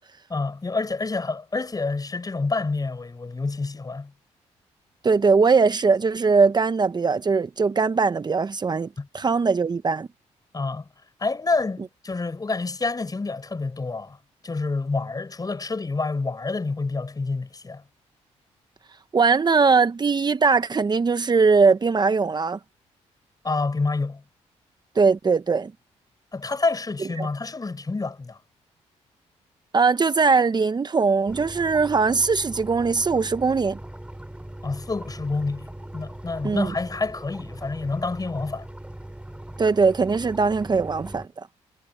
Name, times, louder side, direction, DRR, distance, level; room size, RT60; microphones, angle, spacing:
voice 1, 0.3-4.1 9.0-9.1 10.5-10.9 11.2-14.2 14.4-17.8 23.4-24.2 26.3-28.4 34.6-38.7, left 3 dB, 30° left, 8.0 m, -28 dB
voice 2, 5.0-8.9 9.1-10.1 19.1-22.6 25.0-25.7 27.2-27.3 29.7-33.8 36.4-36.7 39.6-41.5, right 4 dB, 35° right, 0.9 m, -20 dB
sound 1, 31.3-41.3, right 1 dB, 10° right, 3.4 m, -40 dB
supercardioid pair, 65°, 12 cm